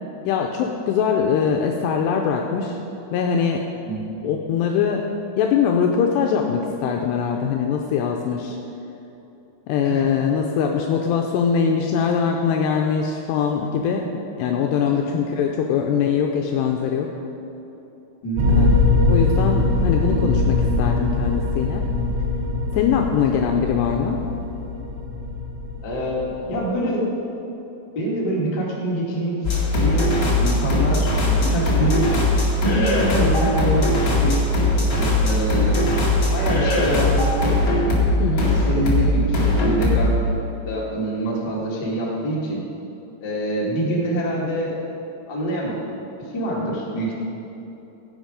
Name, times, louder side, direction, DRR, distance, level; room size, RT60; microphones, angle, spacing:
voice 1, 0.3-2.8 3.1-3.7 4.2-5.0 5.4-8.6 9.7-14.1 14.4-17.1 18.6-18.7 18.9-21.8 22.7-24.2 38.2-38.6, left 7 dB, 80° left, 2 dB, 2.5 m, -22 dB
voice 2, 9.8-10.3 18.2-18.6 25.8-27.1 27.9-29.4 29.7-32.0 32.6-34.4 35.0-35.8 36.3-37.6 38.7-40.1 40.6-42.6 43.2-44.7 45.3-45.8 46.2-47.1, right 1 dB, 40° left, -5 dB, 1.6 m, -25 dB
sound 1, 18.4-26.7, left 3 dB, 85° right, 3.9 m, -22 dB
sound 2, 29.4-40.3, left 1 dB, 55° left, 1.2 m, -20 dB
16.0 x 8.1 x 5.1 m, 3.0 s
omnidirectional pair, 5.4 m